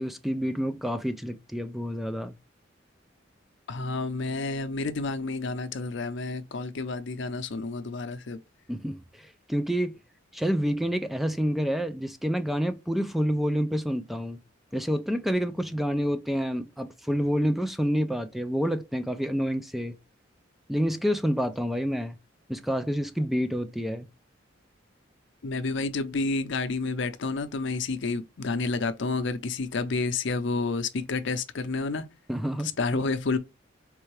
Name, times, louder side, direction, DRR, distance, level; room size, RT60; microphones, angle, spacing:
voice 1, 0.0-2.3 8.7-10.0 10.3-14.4 14.7-19.9 20.7-22.2 22.5-24.1 32.3-33.0, equal, ahead, 0.3 m, -28 dB
voice 2, 3.7-8.4 25.4-32.1 32.6-33.4, left 3 dB, 65° left, 0.6 m, -30 dB
4.4 x 3.3 x 3.2 m
head